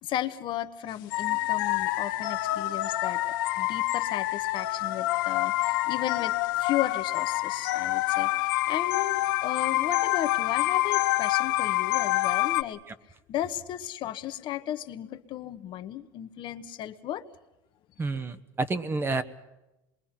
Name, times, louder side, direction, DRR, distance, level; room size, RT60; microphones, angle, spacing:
voice 1, 0.0-12.8 13.3-17.2, left 12 dB, 50° left, 10 dB, 1.1 m, -34 dB
sound 1, 1.1-12.6, left 18 dB, 80° left, 1.0 m, -27 dB
voice 2, 18.0-19.2, right 3 dB, 20° right, 12 dB, 1.1 m, -29 dB
26.5 x 22.0 x 5.9 m, 0.95 s
supercardioid pair, 110°, 11 cm